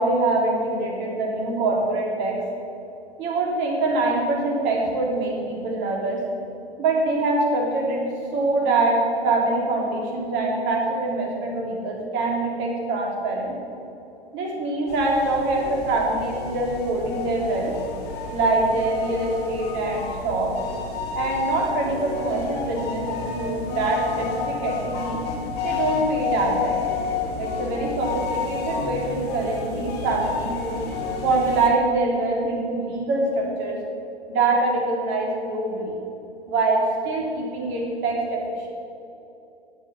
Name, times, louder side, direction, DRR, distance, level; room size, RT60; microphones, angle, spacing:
voice 1, 0.0-2.4 3.2-6.2 6.8-8.0 8.3-13.5 14.3-17.7 18.3-20.5 21.1-25.2 25.6-26.8 27.4-30.8 31.2-33.8 34.3-36.0 36.5-38.7, right 2 dB, 35° right, -1 dB, 3.4 m, -24 dB
sound 1, 14.9-31.7, left 5 dB, 30° left, 1.9 m, -31 dB
13.0 x 8.4 x 7.1 m, 2.8 s
figure-of-eight pair, 110°, 32 cm